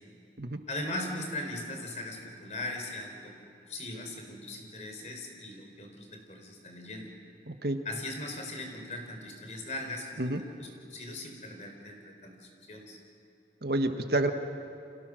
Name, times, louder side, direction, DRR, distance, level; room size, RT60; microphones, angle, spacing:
voice 1, 0.7-7.1 7.8-13.0, left 2 dB, 40° left, 3 dB, 4.2 m, -39 dB
voice 2, 7.5-7.8 10.2-10.4 13.6-14.3, right 1 dB, 60° right, 6 dB, 1.4 m, -29 dB
30.0 x 25.5 x 6.4 m, 2.7 s
head